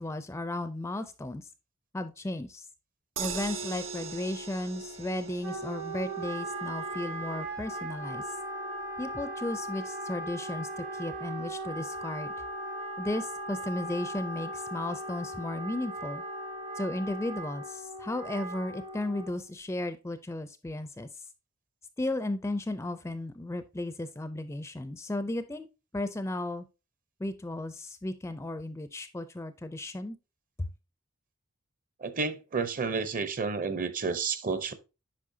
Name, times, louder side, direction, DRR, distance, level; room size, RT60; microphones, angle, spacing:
voice 1, 0.0-1.5 1.9-2.6 3.2-8.2 9.0-12.3 13.0-16.2 16.7-21.1 22.0-25.7 25.9-26.7 27.2-30.2 30.6-30.7, left 1 dB, 10° left, 0.4 m, -35 dB
sound 1, 3.2-15.4 15.8-15.9 16.2-16.3, right 4 dB, 65° right, 0.8 m, -44 dB
Wind instrument woodwind instrument, 5.4-19.5, right 1 dB, 90° right, 3.5 m, -38 dB
voice 2, 32.0-34.7, right 4 dB, 40° right, 0.6 m, -31 dB
8.5 x 5.4 x 2.6 m
head